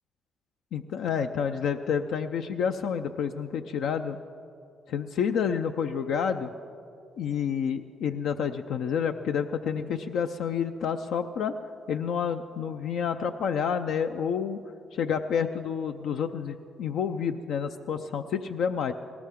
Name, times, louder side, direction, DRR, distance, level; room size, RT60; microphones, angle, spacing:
voice 1, 0.7-4.2 4.9-6.5 7.2-11.5 11.9-14.6 14.9-18.9, left 7 dB, 75° left, 6 dB, 0.5 m, -29 dB
19.5 x 18.0 x 3.7 m, 2.5 s
cardioid pair, 90°, 0 cm